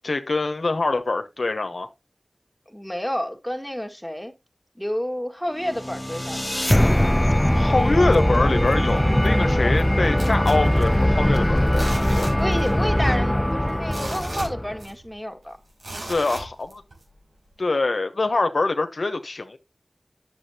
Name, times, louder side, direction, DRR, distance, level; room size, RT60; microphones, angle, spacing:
voice 1, 0.0-1.9 7.5-12.3 16.1-16.8 17.6-19.6, left 3 dB, 80° left, 0.9 m, -24 dB
voice 2, 2.7-4.3 4.8-6.4 12.1-15.6, equal, ahead, 1.9 m, -30 dB
sound 1, 5.7-14.8, left 1 dB, 15° left, 0.6 m, -21 dB
sound 2, 10.2-11.3 11.7-12.9 13.1-13.2 13.7-15.2 15.8-17.0 17.5-17.6, right 1 dB, 85° right, 4.4 m, -36 dB
9.8 x 7.3 x 2.9 m
wide cardioid pair, 40°, 0 cm